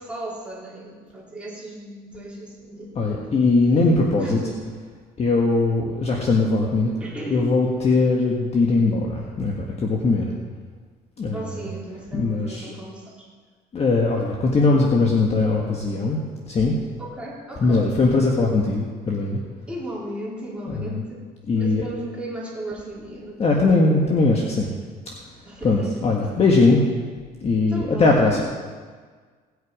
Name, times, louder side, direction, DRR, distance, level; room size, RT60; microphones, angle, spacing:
voice 1, 0.0-3.2 4.2-4.6 7.0-7.5 11.3-13.3 17.0-17.9 19.7-21.3 21.5-23.6 25.5-26.1 27.7-28.4, right 1 dB, 5° right, -6 dB, 3.9 m, -35 dB
voice 2, 3.0-4.4 5.2-6.9 7.3-10.3 11.2-11.4 12.1-12.7 13.7-16.2 16.5-16.8 17.6-19.4 20.7-20.9 21.5-21.8 23.4-24.7 25.6-26.8 27.4-28.4, left 3 dB, 35° left, -1 dB, 1.6 m, -20 dB
18.0 x 8.4 x 5.0 m, 1.6 s
cardioid pair, 110°, 17 cm